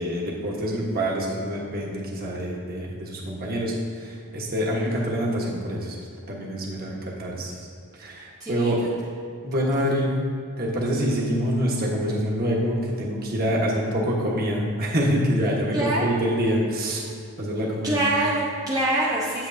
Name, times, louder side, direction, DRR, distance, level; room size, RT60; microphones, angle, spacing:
voice 1, 0.0-3.7 4.0-6.0 6.3-7.5 8.0-8.8 9.4-10.1 10.6-17.0 17.4-18.0, equal, 45° right, -3 dB, 1.3 m, -26 dB
voice 2, 8.4-8.9 9.7-9.8 15.7-16.2 17.8-19.5, right 1 dB, 15° right, -6 dB, 0.7 m, -25 dB
8.3 x 7.9 x 2.7 m, 2.3 s
head